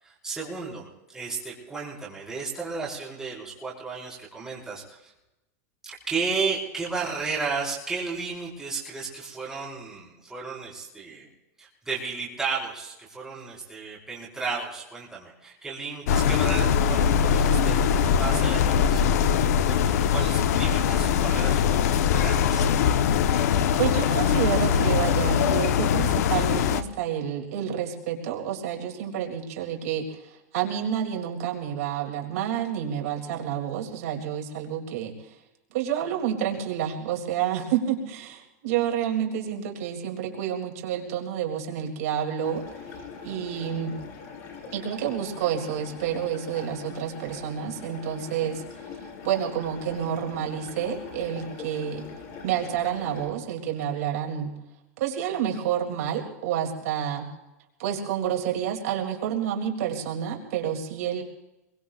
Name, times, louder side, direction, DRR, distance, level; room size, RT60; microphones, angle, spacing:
voice 1, 0.0-5.1 5.8-11.3 11.6-19.1 19.7-22.7, right 4 dB, 5° right, -6 dB, 4.4 m, -33 dB
sound 1, 16.1-26.8, left 7 dB, 80° left, 0.9 m, -22 dB
voice 2, 23.8-35.4 35.7-42.6 43.2-44.0 44.7-48.6 49.2-52.0 52.4-54.5 55.0-57.3 57.8-61.2, right 9 dB, 65° right, 2 dB, 2.5 m, -29 dB
sound 2, 42.4-53.3, left 5 dB, 40° left, 4.5 m, -42 dB
26.0 x 22.5 x 2.4 m, 0.95 s
supercardioid pair, 170°, 9 cm